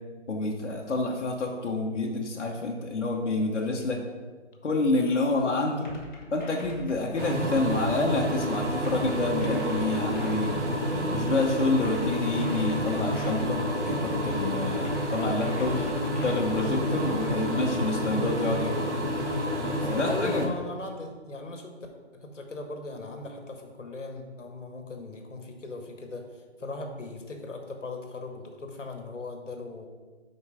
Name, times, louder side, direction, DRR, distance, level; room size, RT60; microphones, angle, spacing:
voice 1, 0.3-4.0 4.6-5.9 6.3-10.6 11.1-15.8 16.2-18.9 19.6-20.5, left 2 dB, 70° left, -1 dB, 1.1 m, -28 dB
sound 1, 5.8-8.3 8.8-11.3 11.8-14.3 14.8-17.3, left 1 dB, 40° left, 1.5 m, -42 dB
sound 2, 7.2-20.5, equal, 70° right, 1.5 m, -29 dB
voice 2, 12.8-13.1 15.7-16.3 17.0-17.5 19.7-21.7 22.1-29.9, left 2 dB, 90° left, 4 dB, 1.3 m, -39 dB
5.4 x 4.7 x 4.9 m, 1.4 s
figure-of-eight pair, 165°, 36 cm